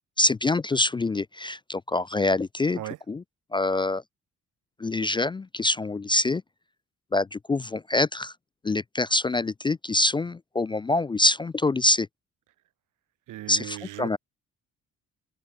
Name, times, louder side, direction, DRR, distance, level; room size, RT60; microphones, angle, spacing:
voice 1, 0.2-2.8 3.1-3.2 3.5-4.0 4.8-6.4 7.1-8.3 8.6-12.1 13.5-14.2, left 2 dB, 15° left, 0.3 m, -25 dB
voice 2, 13.3-14.2, right 15 dB, 85° right, 2.2 m, -37 dB
cardioid pair, 90°, 30 cm